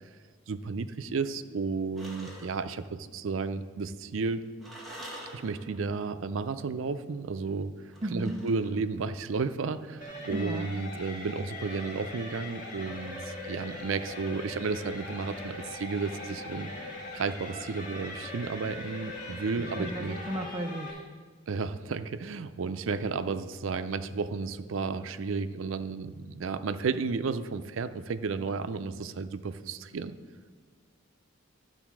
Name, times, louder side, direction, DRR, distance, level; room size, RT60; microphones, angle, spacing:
voice 1, 0.5-4.4 5.3-7.7 8.1-16.7 17.1-20.2 21.5-30.1, right 4 dB, 75° right, 11 dB, 0.5 m, -33 dB
sound 1, 2.0-2.7 4.6-5.8 7.9-9.0, equal, ahead, 1.6 m, -45 dB
voice 2, 8.0-8.4 10.3-10.7 19.8-21.0, equal, 25° right, 2 dB, 0.5 m, -34 dB
sound 2, 10.0-20.9, left 2 dB, 40° left, 1.7 m, -41 dB
12.0 x 4.1 x 6.0 m, 1.5 s
head